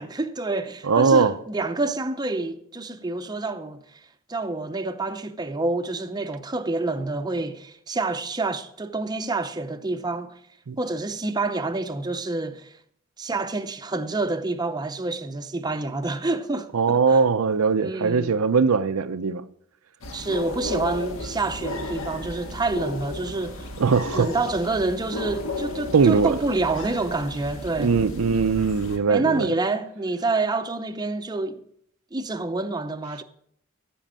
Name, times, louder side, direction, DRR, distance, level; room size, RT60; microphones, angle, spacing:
voice 1, 0.0-10.3 10.8-12.7 13.2-17.2 17.8-18.3 20.1-23.7 24.1-28.0 29.1-31.6 32.1-33.2, right 3 dB, 20° right, 0.6 m, -28 dB
voice 2, 0.8-1.3 10.7-10.8 16.7-19.4 23.8-24.3 25.9-26.3 27.8-29.5, right 5 dB, 85° right, 0.6 m, -20 dB
sound 1, 20.0-29.0, left 2 dB, 70° left, 1.6 m, -34 dB
14.0 x 5.2 x 7.4 m
head